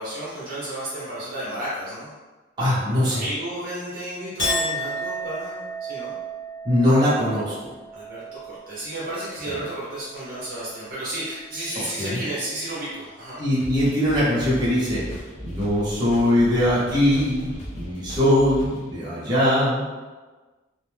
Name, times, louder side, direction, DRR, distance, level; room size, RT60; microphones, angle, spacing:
voice 1, 0.0-2.1 3.1-6.1 7.9-13.4, right 1 dB, 45° right, -8 dB, 0.8 m, -32 dB
voice 2, 2.6-3.2 6.6-7.7 12.0-12.2 13.4-15.0 15.4-19.8, left 1 dB, 20° right, -10 dB, 0.9 m, -21 dB
Chink clink, 4.4-11.0 11.3-11.9, right 1 dB, 70° left, 1.0 m, -33 dB
sound 1, 13.6-19.0, equal, 35° left, 0.6 m, -37 dB
2.6 x 2.0 x 3.2 m, 1.3 s
head